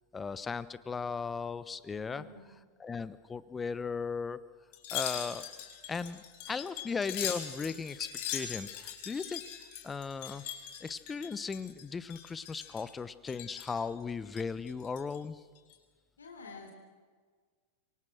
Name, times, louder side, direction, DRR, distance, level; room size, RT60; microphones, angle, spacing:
voice 1, 0.1-2.2 2.8-4.4 4.9-5.5 5.9-9.4 9.8-10.4 10.8-15.4, left 5 dB, 15° left, 16 dB, 1.0 m, -37 dB
voice 2, 2.1-2.5 16.2-16.7, left 3 dB, 70° left, 3 dB, 3.7 m, -50 dB
Wind chime, 4.7-11.8 12.1-12.9 13.3-13.8 14.3-15.2 15.6-15.7, left 10 dB, 50° left, 4.8 m, -41 dB
27.0 x 23.5 x 6.4 m, 1.5 s
figure-of-eight pair, 90°, 0 cm